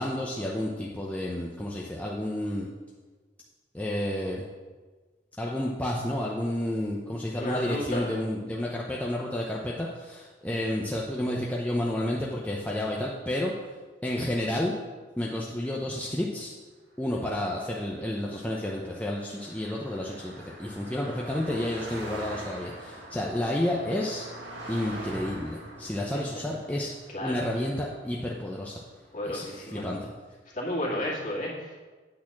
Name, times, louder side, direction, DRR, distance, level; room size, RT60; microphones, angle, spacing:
voice 1, 0.0-2.7 3.7-4.5 5.4-13.5 14.0-14.7 15.2-16.5 17.0-24.3 24.7-26.9 27.2-28.8 29.2-30.0, left 1 dB, 10° left, -3 dB, 0.6 m, -31 dB
voice 2, 7.4-8.1 27.1-27.3 29.1-29.9 30.5-31.8, left 1 dB, 45° left, -5 dB, 2.3 m, -32 dB
Car passing by, 17.2-28.8, right 1 dB, 75° right, 1.9 m, -44 dB
8.8 x 4.1 x 7.1 m, 1.3 s
head